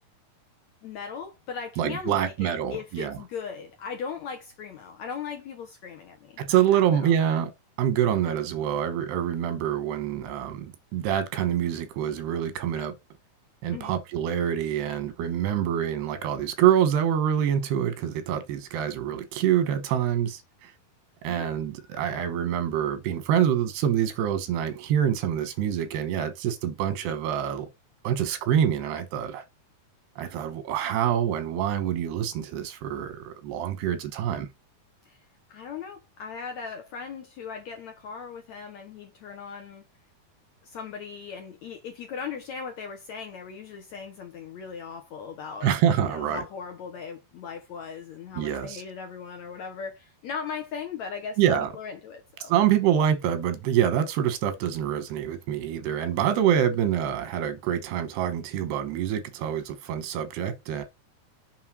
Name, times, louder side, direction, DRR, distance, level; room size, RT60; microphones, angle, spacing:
voice 1, 0.8-7.3 13.7-13.9 21.2-21.5 35.0-35.2 35.5-39.8 40.6-45.7 46.0-52.5 56.4-56.6, left 6 dB, 65° left, 1.8 m, -38 dB
voice 2, 1.8-3.2 6.4-7.5 7.8-13.0 13.6-20.7 21.2-27.7 28.0-29.4 30.2-34.5 45.6-46.4 48.4-48.8 51.4-51.7 52.4-60.8, right 10 dB, 90° right, 3.3 m, -26 dB
7.5 x 3.8 x 6.2 m
omnidirectional pair, 4.5 m